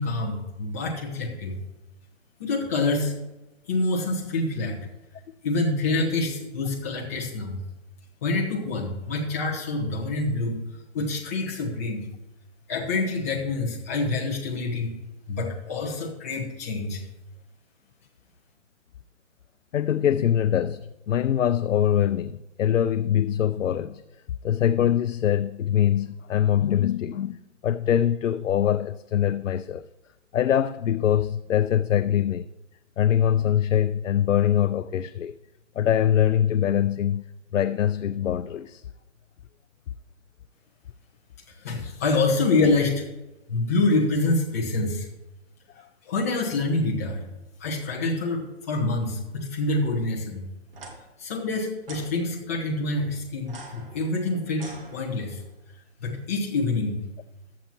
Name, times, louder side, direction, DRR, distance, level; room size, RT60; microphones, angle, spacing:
voice 1, 0.0-1.6 2.4-3.1 3.7-4.8 5.4-7.6 8.2-10.6 10.9-12.1 12.7-14.9 15.3-17.0 41.6-43.0 43.5-45.1 46.0-47.2 47.6-50.4 51.2-55.4 56.0-57.0, left 2 dB, 10° left, 0.9 m, -26 dB
voice 2, 19.7-24.0 24.4-29.8 30.3-32.5 33.0-35.3 35.8-37.2 37.5-38.8, left 10 dB, 80° left, 0.5 m, -23 dB
sound 1, 50.7-50.9 51.8-52.1 53.4-55.4, right 2 dB, 50° right, 2.1 m, -44 dB
14.5 x 8.9 x 3.0 m
hypercardioid pair, 170°, 37 cm